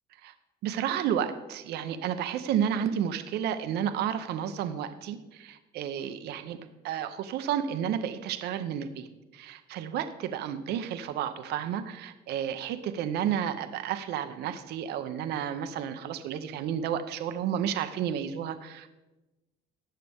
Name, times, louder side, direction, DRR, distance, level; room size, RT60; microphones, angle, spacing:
voice 1, 0.6-9.1 9.3-18.9, right 9 dB, 80° right, 9 dB, 0.8 m, -31 dB
19.0 x 6.8 x 3.5 m, 1.1 s
cardioid pair, 110°, 17 cm